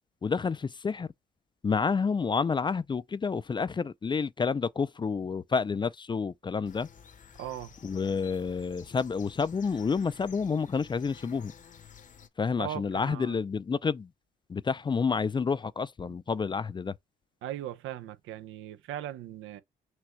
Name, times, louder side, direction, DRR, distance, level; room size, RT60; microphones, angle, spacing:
voice 1, 0.2-1.1 1.6-6.9 7.8-11.5 12.4-14.1 14.5-16.9, left 5 dB, 25° left, 0.4 m, -29 dB
sound 1, 6.6-12.3, left 7 dB, 40° left, 0.8 m, -52 dB
voice 2, 7.4-7.7 12.6-13.4 16.0-16.1 17.4-19.6, right 12 dB, 90° right, 0.7 m, -39 dB
6.1 x 2.3 x 3.1 m
cardioid pair, 90°, 20 cm